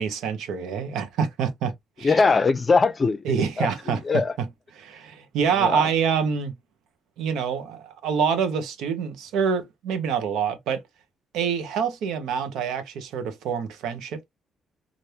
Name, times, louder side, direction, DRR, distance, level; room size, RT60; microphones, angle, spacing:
voice 1, 0.0-1.7 2.0-2.2 3.2-4.5 4.8-6.5 7.2-10.8 11.3-14.2, right 6 dB, 85° right, 0.8 m, -26 dB
voice 2, 2.0-4.3 5.6-5.8, left 4 dB, 35° left, 0.5 m, -22 dB
3.3 x 2.5 x 2.7 m
cardioid pair, 90°, 0 cm